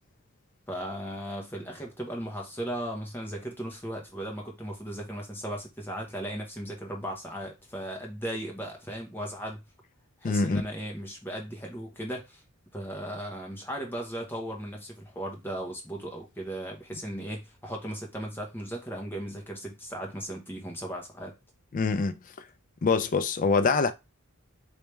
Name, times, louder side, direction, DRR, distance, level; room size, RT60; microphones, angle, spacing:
voice 1, 0.7-9.6 10.2-12.4 12.7-21.3, equal, 10° left, 0.9 m, -37 dB
voice 2, 10.2-10.6 21.7-22.2 22.8-23.9, left 4 dB, 35° left, 0.3 m, -24 dB
3.2 x 3.2 x 3.2 m
head